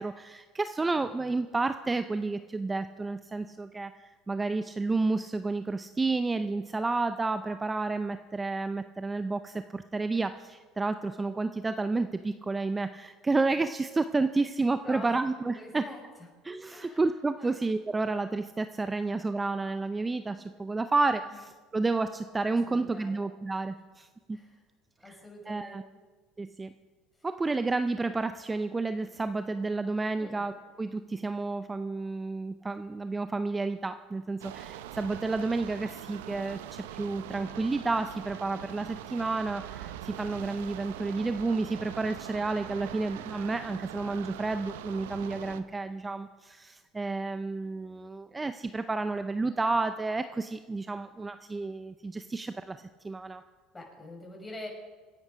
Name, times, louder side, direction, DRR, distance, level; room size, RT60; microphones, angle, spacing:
voice 1, 0.0-3.9 4.3-15.8 16.4-24.4 25.0-25.2 25.5-25.8 26.4-26.7 27.2-30.5 30.8-53.4, right 3 dB, 20° right, 10 dB, 0.6 m, -31 dB
voice 2, 14.8-15.2 15.6-16.0 16.7-17.1 17.4-17.6 18.9-19.1 22.6-23.2 23.8-23.9 24.3-24.6 25.0-25.8 27.2-27.3 30.2-30.4 53.7-54.7, left 1 dB, 20° left, 0 dB, 5.8 m, -45 dB
sound 1, 34.4-45.6, right 12 dB, 85° right, 0.7 m, -42 dB
25.0 x 9.9 x 5.1 m, 1.4 s
hypercardioid pair, 85°, 0 cm